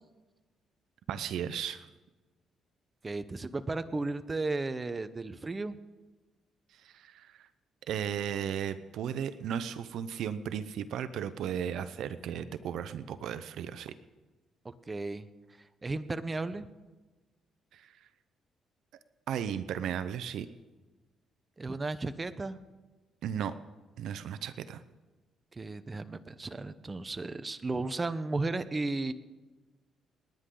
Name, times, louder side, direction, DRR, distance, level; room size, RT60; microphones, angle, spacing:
voice 1, 1.1-1.9 6.7-7.5 7.9-14.0 17.7-18.0 19.3-20.5 23.2-23.6 24.0-24.8, right 9 dB, 75° right, 13 dB, 0.7 m, -35 dB
voice 2, 3.0-5.8 14.9-15.3 15.8-16.7 21.6-22.6 25.5-29.1, right 3 dB, 25° right, 12 dB, 0.8 m, -34 dB
30.0 x 9.9 x 3.9 m, 1.2 s
cardioid pair, 90°, 0 cm